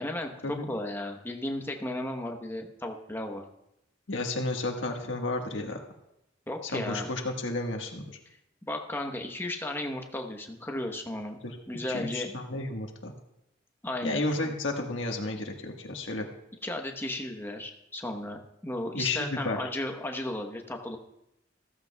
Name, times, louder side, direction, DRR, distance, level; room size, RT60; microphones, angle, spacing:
voice 1, 0.0-3.4 6.5-7.1 8.7-11.4 11.7-12.3 13.8-14.2 16.6-21.0, left 1 dB, 10° left, 3 dB, 1.0 m, -34 dB
voice 2, 4.1-5.8 6.6-8.0 11.4-11.6 11.9-13.1 14.0-16.3 18.9-19.6, left 2 dB, 85° left, 2 dB, 1.5 m, -32 dB
15.0 x 14.0 x 2.3 m, 0.85 s
head